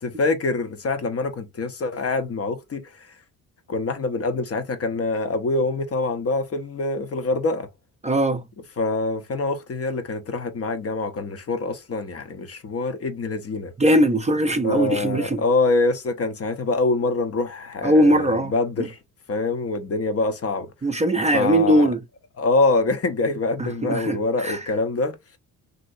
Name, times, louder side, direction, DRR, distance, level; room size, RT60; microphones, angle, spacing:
voice 1, 0.0-3.1 3.7-7.7 8.8-13.7 14.6-19.0 19.3-20.7 21.3-21.9 22.4-25.2, left 3 dB, 40° left, 0.7 m, -25 dB
voice 2, 8.0-8.4 13.8-15.4 17.8-18.5 18.8-18.9 20.8-22.0 23.6-24.7, right 1 dB, 20° right, 0.5 m, -20 dB
3.0 x 2.7 x 2.6 m
supercardioid pair, 65°, 39 cm